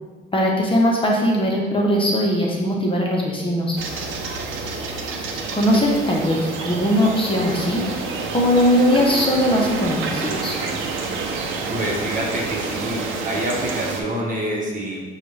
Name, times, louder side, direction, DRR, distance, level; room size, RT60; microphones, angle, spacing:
voice 1, 0.3-3.8 5.5-7.9 8.3-10.5, equal, 25° left, -2 dB, 0.8 m, -20 dB
sound 1, 3.8-14.0, right 4 dB, 80° right, 0.6 m, -28 dB
voice 2, 11.7-15.1, equal, 40° right, -2 dB, 1.1 m, -27 dB
6.6 x 2.4 x 3.2 m, 1.3 s
cardioid pair, 90°, 20 cm